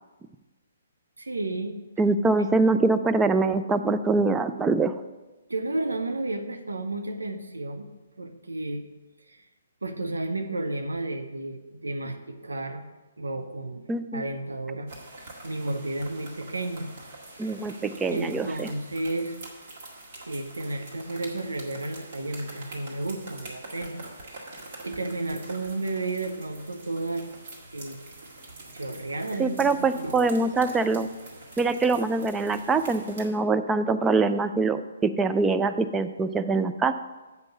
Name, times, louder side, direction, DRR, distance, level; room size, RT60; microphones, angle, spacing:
voice 1, 1.2-1.9 5.5-7.9 8.2-8.8 9.3-9.4 9.8-12.8 13.2-13.8 14.1-14.9 15.4-16.9 17.3-17.5 18.1-19.4 20.3-24.0 24.3-27.3 27.7-28.0 28.7-30.3, right 2 dB, 70° right, 7 dB, 0.8 m, -32 dB
voice 2, 2.0-4.9 13.9-14.2 17.4-18.7 29.4-31.1 31.6-36.9, right 3 dB, 10° right, 9 dB, 0.4 m, -24 dB
sound 1, 14.9-33.3, right 2 dB, 45° right, 1.9 m, -45 dB
8.0 x 5.3 x 6.5 m, 1.1 s
figure-of-eight pair, 130°, 0 cm